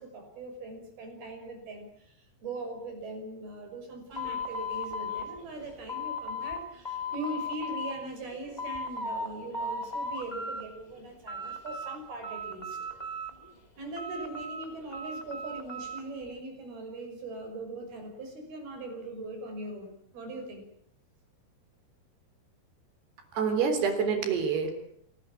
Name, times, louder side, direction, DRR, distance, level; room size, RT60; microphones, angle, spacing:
voice 1, 0.0-12.8 13.8-20.7, right 2 dB, 70° right, 5 dB, 7.8 m, -40 dB
sound 1, 4.1-6.6 6.8-7.9 8.3-9.3 9.5-10.6 11.0-12.0 12.2-13.5 14.0-16.0, left 2 dB, 15° left, 2.0 m, -36 dB
voice 2, 23.3-24.7, right 6 dB, 85° right, 7 dB, 5.7 m, -27 dB
26.5 x 19.0 x 8.7 m, 0.71 s
omnidirectional pair, 4.6 m